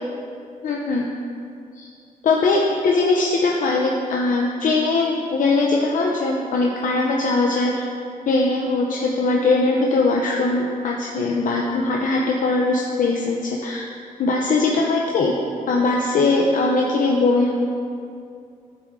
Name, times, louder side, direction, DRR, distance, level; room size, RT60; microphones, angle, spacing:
voice 1, 0.6-1.0 1.7-1.9 2.2-7.8 8.3-13.8 14.2-15.3 15.7-17.5, left 3 dB, 65° left, -1 dB, 0.7 m, -20 dB
13.5 x 4.7 x 3.7 m, 2.5 s
wide cardioid pair, 135°, 15 cm